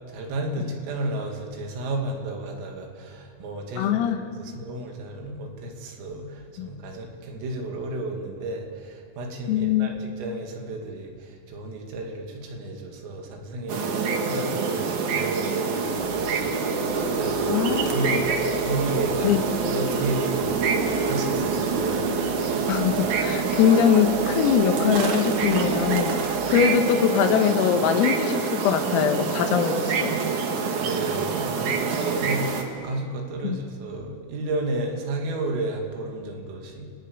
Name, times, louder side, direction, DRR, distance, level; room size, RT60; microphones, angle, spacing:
voice 1, 0.1-18.2 18.6-19.4 19.7-22.0 30.8-36.9, right 2 dB, 75° right, 2 dB, 5.1 m, -33 dB
voice 2, 3.8-4.2 6.6-6.7 9.5-9.9 17.5-18.2 19.2-19.4 22.7-30.2 33.4-33.6, left 8 dB, 85° left, 6 dB, 4.1 m, -22 dB
sound 1, 13.7-32.6, right 5 dB, 60° right, 2.2 m, -26 dB
sound 2, 15.9-26.3, left 2 dB, 30° right, 5.3 m, -43 dB
29.0 x 19.5 x 8.6 m, 2.4 s
omnidirectional pair, 6.0 m